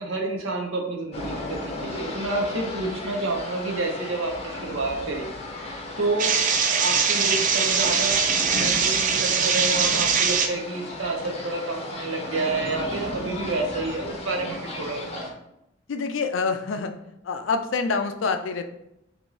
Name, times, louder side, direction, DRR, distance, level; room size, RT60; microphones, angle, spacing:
voice 1, 0.0-5.3 6.0-6.4 6.6-15.2, right 2 dB, 75° right, 2 dB, 0.8 m, -29 dB
sound 1, 1.1-15.3, left 2 dB, 30° left, 0.6 m, -35 dB
sound 2, 6.2-10.5, right 6 dB, 40° right, 0.4 m, -22 dB
voice 2, 15.9-16.9 17.2-18.7, left 4 dB, 70° left, 7 dB, 0.4 m, -26 dB
5.1 x 2.6 x 3.1 m, 0.83 s
head